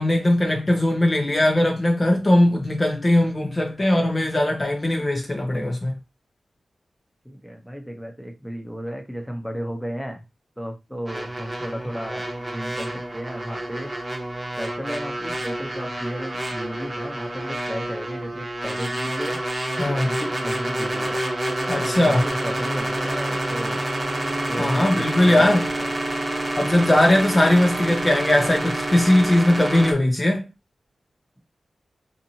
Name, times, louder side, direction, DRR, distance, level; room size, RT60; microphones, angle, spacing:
voice 1, 0.0-5.9 19.8-20.2 21.7-22.3 24.6-25.7 26.6-30.5, left 1 dB, 30° left, 0.6 m, -19 dB
voice 2, 7.3-10.2 10.6-12.3 12.5-12.9 13.1-13.9 14.6-19.4 19.9-21.2 22.1-22.2 22.4-23.8 24.5-25.5, equal, ahead, 0.8 m, -33 dB
sound 1, 11.1-29.9, right 1 dB, 25° right, 0.9 m, -28 dB
2.7 x 2.5 x 2.8 m
cardioid pair, 60°, 0 cm